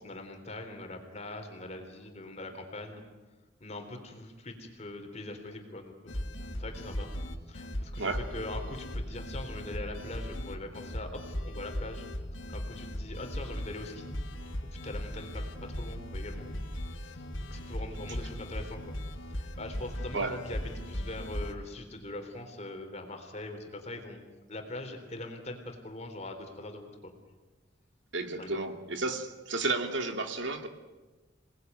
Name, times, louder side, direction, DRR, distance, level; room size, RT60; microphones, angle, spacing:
voice 1, 0.0-3.0 3.6-6.1 6.6-7.1 7.5-12.1 12.5-14.1 14.7-16.5 16.9-18.9 19.3-24.2 24.5-27.1 28.4-28.6, left 2 dB, 35° left, 4 dB, 3.6 m, -42 dB
sound 1, 6.1-21.5, equal, 75° left, 3.1 m, -38 dB
voice 2, 28.1-30.7, right 3 dB, 65° right, 6 dB, 2.5 m, -32 dB
28.0 x 19.5 x 9.5 m, 1.2 s
head